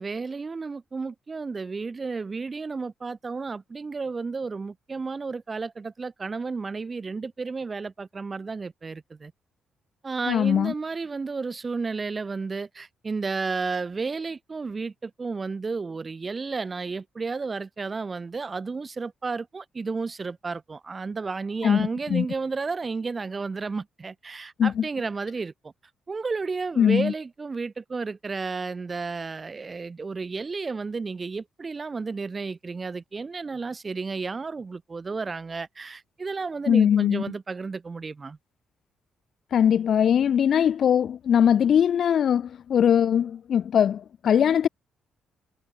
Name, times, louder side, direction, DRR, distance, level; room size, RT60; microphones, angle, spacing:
voice 1, 0.0-9.3 10.0-25.7 26.1-38.4, right 4 dB, 30° right, 1.5 m, -32 dB
voice 2, 10.3-10.7 21.6-22.3 24.6-24.8 26.8-27.1 36.7-37.2 39.5-44.7, left 8 dB, 60° left, 0.7 m, -21 dB
cardioid pair, 90°, 0 cm